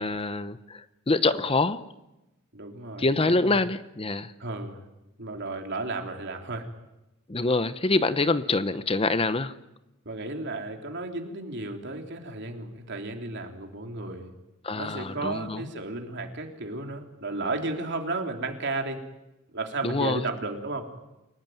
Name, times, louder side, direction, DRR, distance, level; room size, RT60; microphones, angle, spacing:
voice 1, 0.0-1.8 3.0-4.3 7.3-9.5 14.6-15.7 19.8-20.3, left 3 dB, 25° left, 13 dB, 0.9 m, -25 dB
voice 2, 2.5-3.5 4.4-4.8 5.2-6.7 10.1-14.3 14.8-19.0 19.5-20.9, right 2 dB, 55° right, 4 dB, 3.5 m, -33 dB
29.0 x 18.0 x 9.4 m, 0.96 s
head